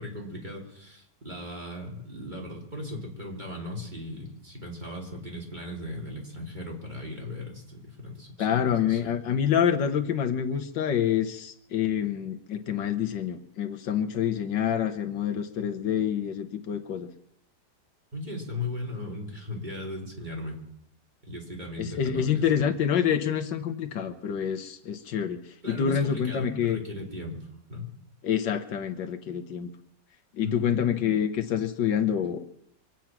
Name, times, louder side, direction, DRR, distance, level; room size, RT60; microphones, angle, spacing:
voice 1, 0.0-9.2 18.1-20.6 21.2-22.6 25.6-27.9 30.4-30.8, left 2 dB, 25° right, -2 dB, 3.3 m, -37 dB
voice 2, 8.4-17.1 21.8-25.4 25.7-26.8 28.2-29.7 30.4-32.4, left 8 dB, 75° left, 6 dB, 1.6 m, -27 dB
24.5 x 9.0 x 5.9 m, 0.77 s
omnidirectional pair, 2.0 m